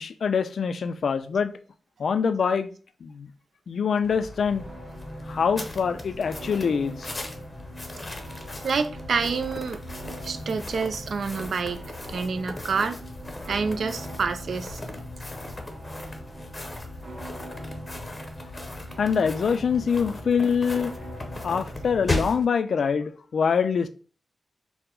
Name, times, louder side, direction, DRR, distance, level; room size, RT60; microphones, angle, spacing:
voice 1, 0.0-1.5 2.0-2.7 3.0-3.3 3.7-4.6 5.3-7.1 19.0-20.9 21.4-23.9, left 6 dB, 70° left, 0.3 m, -24 dB
sound 1, 4.0-22.5, left 2 dB, 25° left, 0.6 m, -37 dB
sound 2, 4.6-22.4, right 1 dB, 40° right, 1.6 m, -43 dB
voice 2, 8.6-9.8 10.2-11.8 12.1-13.0 13.5-14.8, right 5 dB, 70° right, 0.4 m, -27 dB
4.6 x 2.0 x 3.8 m
wide cardioid pair, 120°, 0 cm